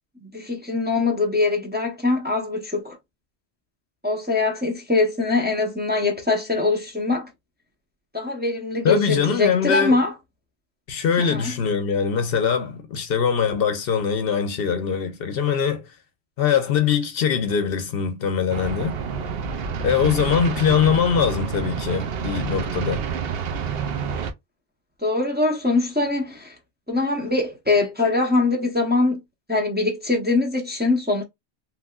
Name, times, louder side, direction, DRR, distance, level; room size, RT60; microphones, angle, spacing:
voice 1, 0.2-3.0 4.0-7.3 8.1-10.1 11.2-11.5 25.0-26.6 26.9-29.2 29.5-31.2, left 3 dB, 10° right, 0.6 m, -23 dB
voice 2, 8.8-10.0 10.9-15.8 16.4-19.0 19.8-23.1, left 7 dB, 70° left, 0.7 m, -22 dB
sound 1, 18.5-24.3, right 6 dB, 70° right, 0.8 m, -28 dB
3.1 x 2.7 x 2.3 m
omnidirectional pair, 1.1 m